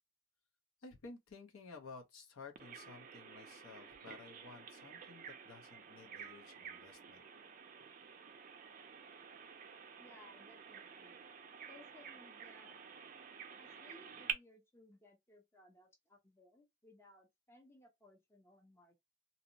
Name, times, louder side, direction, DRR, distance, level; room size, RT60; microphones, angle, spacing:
voice 1, 0.8-7.2, left 4 dB, 80° left, 0.7 m, -54 dB
Bird vocalization bird call bird song, 2.6-14.3, right 7 dB, 40° right, 0.4 m, -50 dB
voice 2, 10.0-11.2 11.7-12.8 13.6-19.0, left 2 dB, 10° left, 0.5 m, -62 dB
2.7 x 2.0 x 2.5 m
head